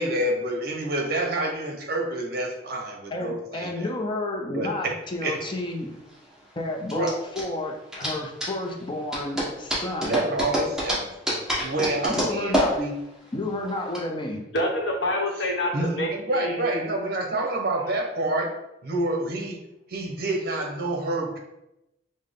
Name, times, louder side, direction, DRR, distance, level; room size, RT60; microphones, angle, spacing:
voice 1, 0.0-3.9 4.5-4.9 5.2-5.5 6.9-7.1 10.1-13.0 15.7-18.5 18.8-19.6 19.9-21.4, right 1 dB, 55° right, 1 dB, 0.8 m, -28 dB
voice 2, 3.1-5.9 6.6-10.2 12.1-12.8 13.3-14.4, left 2 dB, 25° left, 2 dB, 0.5 m, -31 dB
sound 1, 5.1-14.0, equal, 5° right, 1.3 m, -29 dB
voice 3, 14.5-16.6, left 1 dB, 75° left, 0 dB, 1.0 m, -27 dB
5.6 x 2.1 x 3.6 m, 0.88 s
head